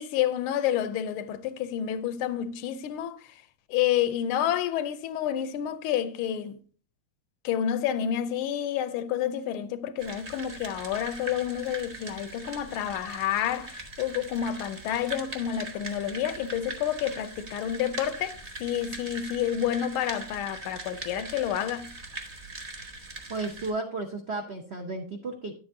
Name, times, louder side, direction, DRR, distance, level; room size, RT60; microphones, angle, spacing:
voice 1, 0.0-3.3 3.7-6.6 7.4-21.9, left 10 dB, 80° left, 1.5 m, -29 dB
sound 1, 10.0-23.7, right 2 dB, 30° right, 0.7 m, -41 dB
voice 2, 23.3-25.5, right 3 dB, 70° right, 0.6 m, -33 dB
10.0 x 7.9 x 2.6 m
omnidirectional pair, 2.3 m